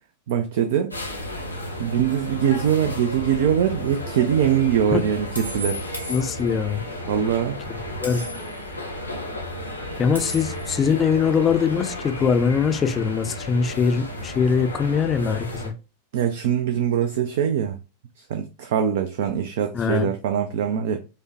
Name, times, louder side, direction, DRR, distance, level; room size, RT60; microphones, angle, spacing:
voice 1, 0.3-0.9 1.8-5.8 7.1-7.6 16.1-17.8 18.2-21.0, right 9 dB, 55° right, 0.3 m, -23 dB
sound 1, 0.9-15.7, left 1 dB, 90° left, 0.7 m, -33 dB
sound 2, 3.8-4.0 5.3-6.8 8.0-8.6 10.1-10.8, left 2 dB, 90° right, 0.8 m, -36 dB
voice 2, 6.1-6.8 8.0-8.2 10.0-15.7 19.7-20.1, left 6 dB, 20° left, 0.4 m, -22 dB
4.9 x 2.1 x 2.7 m
figure-of-eight pair, 90°, 0 cm